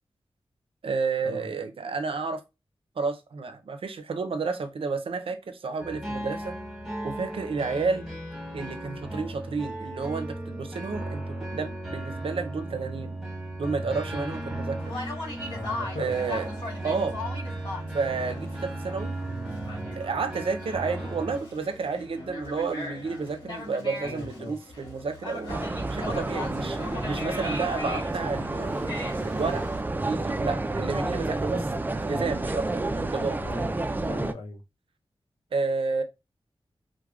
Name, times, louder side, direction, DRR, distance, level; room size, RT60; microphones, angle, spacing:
voice 1, 0.8-2.4 3.0-6.6 7.0-8.1 8.5-13.2 13.6-14.9 16.0-16.5 16.8-17.2 17.9-19.1 20.0-26.8 27.0-28.9 29.2-29.6 30.0-31.7 31.9-33.4 35.5-36.0, right 4 dB, 75° right, 0.5 m, -31 dB
sound 1, 5.8-21.4, right 1 dB, ahead, 1.3 m, -36 dB
voice 2, 13.7-14.1 15.5-16.2 24.0-24.6 26.0-26.2 33.4-33.8 34.0-34.6, left 1 dB, 85° left, 0.7 m, -39 dB
Conversation, 14.8-29.8, left 2 dB, 60° left, 1.5 m, -39 dB
sound 2, 25.5-34.3, right 2 dB, 20° right, 0.3 m, -30 dB
4.7 x 2.1 x 2.3 m
wide cardioid pair, 75°, 9 cm